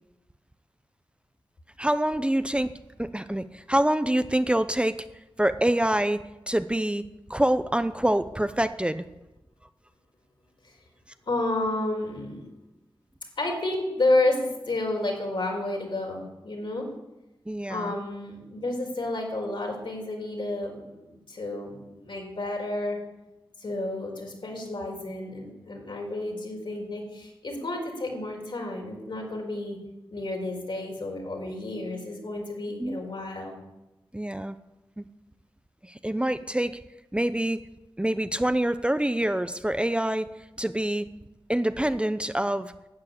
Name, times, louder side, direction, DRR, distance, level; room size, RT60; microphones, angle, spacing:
voice 1, 1.8-2.7 3.0-5.0 5.4-7.0 7.3-9.1 17.5-17.9 32.8-33.0 34.1-34.6 35.0-35.1 35.8-36.8 37.1-37.6 38.0-40.3 40.6-41.1 41.5-42.7, right 1 dB, 10° right, 11 dB, 0.6 m, -26 dB
voice 2, 11.3-12.5 13.4-16.9 17.7-23.0 23.6-29.8 30.1-33.6, left 2 dB, 65° left, 1 dB, 4.4 m, -30 dB
11.5 x 8.3 x 8.6 m, 0.99 s
cardioid pair, 55°, 9 cm